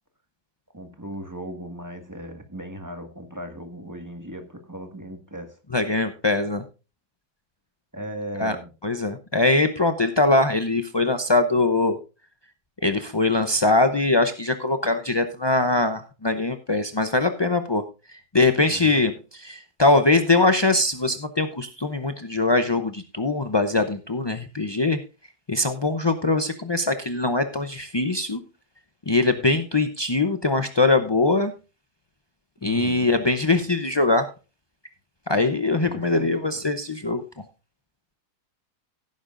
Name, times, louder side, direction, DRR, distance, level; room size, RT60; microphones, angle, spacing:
voice 1, 0.7-5.6 7.9-8.7 18.6-19.0 32.6-33.1 35.8-36.3, right 1 dB, 10° right, 5 dB, 1.7 m, -37 dB
voice 2, 5.7-6.6 8.4-8.6 8.8-12.0 12.8-17.8 18.1-25.0 25.5-28.4 29.1-31.5 32.6-34.3 35.3-37.2, left 2 dB, 40° left, 8 dB, 0.3 m, -22 dB
16.5 x 9.5 x 2.5 m, 0.31 s
omnidirectional pair, 1.7 m